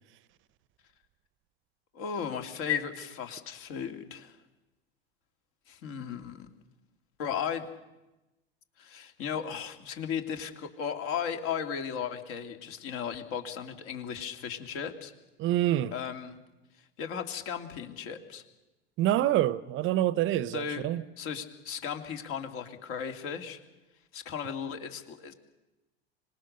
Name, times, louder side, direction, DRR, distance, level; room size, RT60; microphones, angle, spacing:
voice 1, 1.9-4.4 5.7-6.5 7.2-7.7 8.8-15.1 15.9-16.4 17.0-18.4 20.5-20.8 21.2-23.6 24.1-25.3, left 7 dB, 55° left, 2.7 m, -35 dB
voice 2, 15.4-15.9 19.0-21.0, right 13 dB, 40° right, 0.7 m, -26 dB
25.5 x 20.0 x 6.6 m
hypercardioid pair, 95°, 31 cm